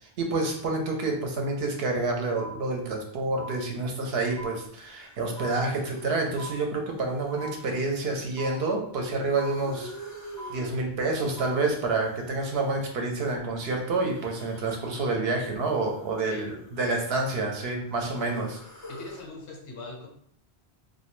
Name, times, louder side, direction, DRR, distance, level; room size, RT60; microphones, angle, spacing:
voice 1, 0.0-9.9 10.5-16.5 16.8-18.6, right 3 dB, 70° right, 2 dB, 0.8 m, -28 dB
sound 1, 2.4-2.5 3.4-3.5 4.4-4.5 5.4-5.5 6.4-6.5 7.4-7.5 8.4-8.5 9.4-9.5 10.4-10.5 11.4-11.5, right 1 dB, 30° right, 0.7 m, -39 dB
sound 2, 4.4-4.5 4.7-6.4 6.8-8.8 9.2-10.8 11.2-13.1 13.8-15.2 15.4-17.2 17.6-19.3, equal, 30° left, 0.3 m, -47 dB
voice 2, 16.2-16.6 18.9-20.1, left 3 dB, 85° left, 1 dB, 1.0 m, -41 dB
2.2 x 2.1 x 3.0 m, 0.63 s
omnidirectional pair, 1.1 m